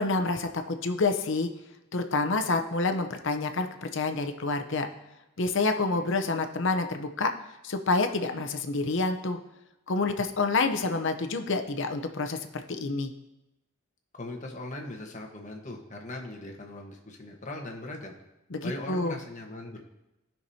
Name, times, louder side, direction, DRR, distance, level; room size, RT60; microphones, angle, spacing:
voice 1, 0.0-1.5 1.9-4.9 5.4-7.3 7.6-9.4 9.9-13.1 18.5-19.2, left 3 dB, 60° left, 7 dB, 0.8 m, -28 dB
voice 2, 14.1-18.2 18.6-19.8, left 2 dB, 35° left, 1 dB, 1.3 m, -39 dB
16.0 x 5.9 x 2.8 m, 0.95 s
head